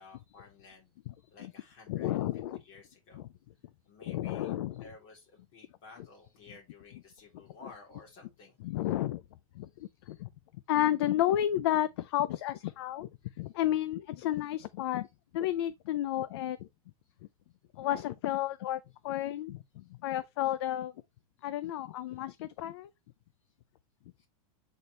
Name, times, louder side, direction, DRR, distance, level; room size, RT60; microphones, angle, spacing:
voice 1, 0.0-3.3 3.8-8.7 10.0-10.2 24.2-24.3, left 3 dB, 30° left, 3.3 m, -55 dB
voice 2, 1.9-2.6 3.1-3.2 4.1-4.8 8.6-9.2 9.6-10.3 10.7-13.1 13.4-15.1 15.3-16.7 17.8-20.9 21.4-22.9, left 13 dB, 50° left, 0.4 m, -32 dB
7.9 x 4.3 x 3.2 m
supercardioid pair, 180°, 18 cm